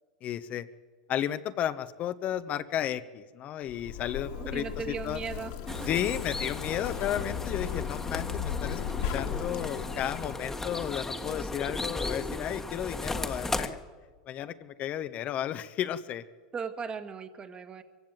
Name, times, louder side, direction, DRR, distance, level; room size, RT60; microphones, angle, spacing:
voice 1, 0.2-0.7 1.1-4.7 5.0-5.2 5.9-8.8 9.1-13.8 14.3-16.2, left 11 dB, 40° left, 11 dB, 0.9 m, -33 dB
Zipper (clothing), 3.7-10.3, left 8 dB, 65° left, 2.5 m, -36 dB
voice 2, 4.3-5.9 16.5-17.8, right 6 dB, 25° right, 8 dB, 1.7 m, -38 dB
sound 1, 5.7-13.7, left 2 dB, 10° left, 1.5 m, -36 dB
23.0 x 15.5 x 9.2 m, 1.4 s
supercardioid pair, 110°, 4 cm